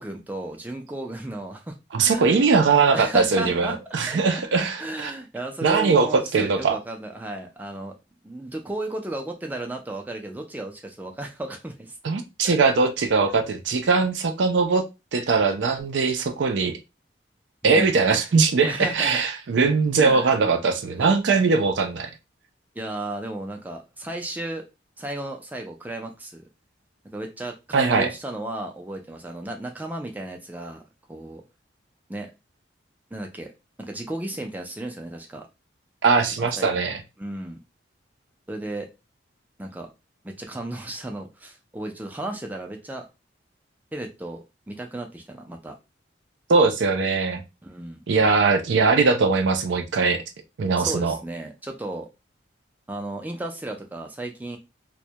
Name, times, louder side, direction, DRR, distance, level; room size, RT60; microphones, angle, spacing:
voice 1, 0.0-1.8 2.0-2.4 2.9-3.8 4.1-8.0 8.2-12.0 12.4-12.6 17.6-17.9 18.6-19.2 20.0-20.3 21.0-21.1 22.8-24.7 25.0-26.4 27.0-30.8 31.1-31.4 32.1-32.3 33.1-33.5 33.8-35.5 36.3-36.8 37.2-37.6 38.5-38.9 39.6-39.9 40.2-43.1 43.9-45.8 47.6-48.0 50.8-52.1 52.9-54.6, right 1 dB, 10° right, 0.4 m, -34 dB
voice 2, 1.9-5.1 5.6-6.8 12.0-14.8 15.1-16.8 17.6-22.1 27.7-28.1 36.0-37.0 46.5-47.4 48.1-50.2 50.6-51.1, right 4 dB, 70° right, 0.4 m, -21 dB
2.1 x 2.1 x 2.7 m
head